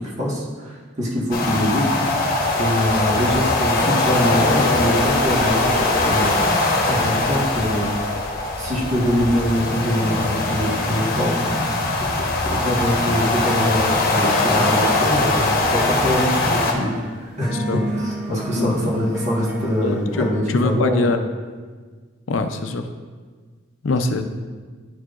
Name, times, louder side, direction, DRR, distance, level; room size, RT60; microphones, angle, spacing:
voice 1, 0.0-2.2 2.5-6.3 6.9-7.9 8.6-11.4 12.1-21.1, equal, 40° right, -4 dB, 1.4 m, -23 dB
sound 1, 1.3-16.7, left 2 dB, 50° left, 1.0 m, -21 dB
sound 2, 14.7-20.3, right 1 dB, 5° right, 1.9 m, -32 dB
voice 2, 18.3-18.7 19.8-21.2 22.3-22.8 23.8-24.2, left 3 dB, 75° left, 7 dB, 0.5 m, -23 dB
10.5 x 4.7 x 2.5 m, 1.5 s
head